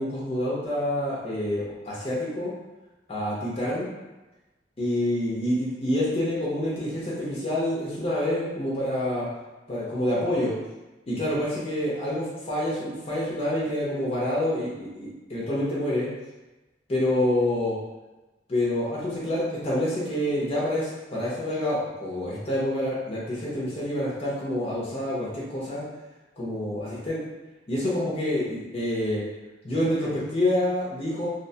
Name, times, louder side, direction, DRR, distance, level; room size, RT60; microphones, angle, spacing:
voice 1, 0.0-2.5 3.1-3.9 4.8-9.3 9.7-10.6 11.1-16.1 16.9-17.8 18.5-25.8 26.4-27.2 27.7-29.2 29.6-31.3, left 1 dB, 35° left, -7 dB, 0.6 m, -27 dB
2.8 x 2.1 x 2.7 m, 1.1 s
head